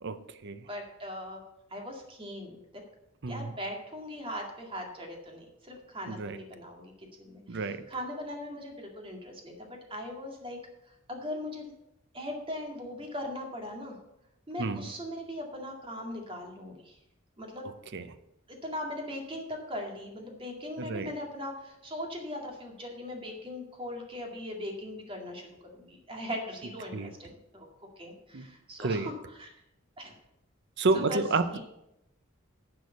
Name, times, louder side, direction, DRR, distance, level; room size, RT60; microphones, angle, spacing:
voice 1, 0.0-0.7 3.2-3.5 6.1-6.4 7.5-7.9 14.6-14.9 17.9-18.1 20.8-21.1 26.9-27.1 28.3-28.5 28.8-29.1 30.8-31.6, right 3 dB, 55° right, 0.6 m, -30 dB
voice 2, 0.7-1.4 1.7-2.6 3.3-10.6 10.9-11.7 12.1-14.0 14.5-17.0 17.4-17.7 18.6-29.5 30.0-30.1 30.9-31.2 31.5-31.6, left 1 dB, 25° right, 2.0 m, -39 dB
10.5 x 4.9 x 8.1 m
head